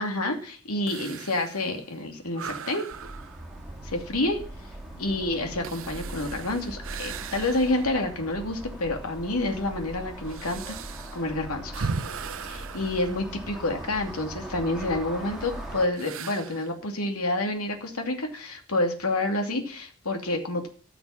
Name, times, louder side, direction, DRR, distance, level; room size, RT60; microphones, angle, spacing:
voice 1, 0.0-2.9 3.9-4.4 5.0-10.8 11.1-11.9 12.5-20.7, left 2 dB, 80° left, 5 dB, 2.6 m, -28 dB
sound 1, 0.9-8.0 8.5-8.6 9.3-13.9 15.9-16.8, right 5 dB, 65° right, 0.8 m, -39 dB
sound 2, 2.9-15.9, right 1 dB, ahead, 2.6 m, -40 dB
14.5 x 6.0 x 8.7 m, 0.41 s
head